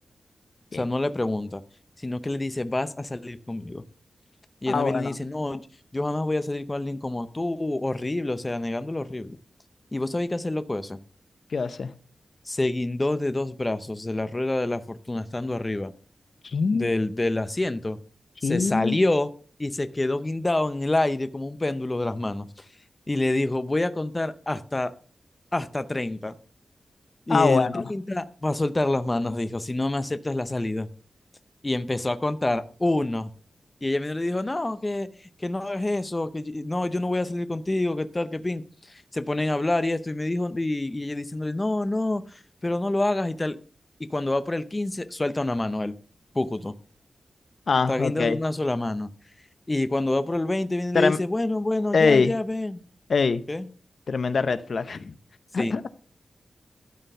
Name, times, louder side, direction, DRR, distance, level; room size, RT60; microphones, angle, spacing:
voice 1, 0.7-1.6 2.0-3.8 4.6-5.6 5.9-9.4 9.9-11.0 12.5-15.9 16.7-18.0 18.4-19.3 19.6-22.7 23.1-24.9 25.5-26.3 27.3-30.9 31.6-33.3 33.8-35.1 35.4-38.6 38.9-43.6 44.0-45.9 46.3-46.8 47.9-49.1 49.7-52.8 53.5-53.7 55.6-55.7, left 2 dB, 20° left, 0.6 m, -27 dB
voice 2, 4.7-5.1 11.5-11.9 16.4-16.9 18.4-19.0 27.3-27.8 47.7-48.4 50.9-51.2 51.9-52.3 53.1-53.4 54.1-55.1 55.5-55.9, left 4 dB, 60° left, 0.6 m, -23 dB
12.5 x 4.5 x 6.6 m
wide cardioid pair, 105°, 0 cm